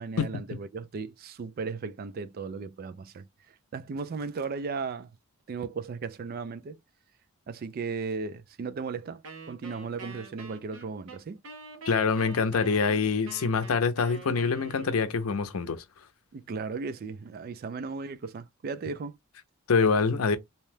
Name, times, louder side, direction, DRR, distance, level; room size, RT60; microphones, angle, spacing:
voice 1, 0.0-5.1 5.5-6.8 7.5-9.2 9.5-11.4 16.3-19.1, right 4 dB, 45° right, 0.3 m, -36 dB
Wind instrument woodwind instrument, 9.2-15.3, right 4 dB, 65° right, 0.8 m, -46 dB
voice 2, 11.9-15.8 19.7-20.4, left 5 dB, 80° left, 0.5 m, -25 dB
2.8 x 2.1 x 3.2 m
head